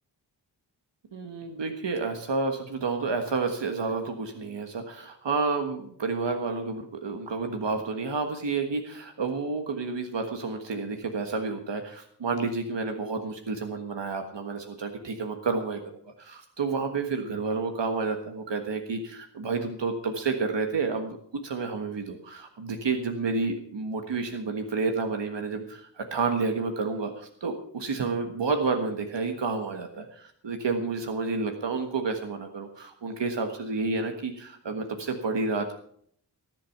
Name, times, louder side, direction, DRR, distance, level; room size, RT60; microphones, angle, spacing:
voice 1, 1.1-35.7, right 4 dB, 85° right, 5 dB, 1.5 m, -30 dB
19.0 x 7.7 x 5.9 m, 0.63 s
wide cardioid pair, 75°, 42 cm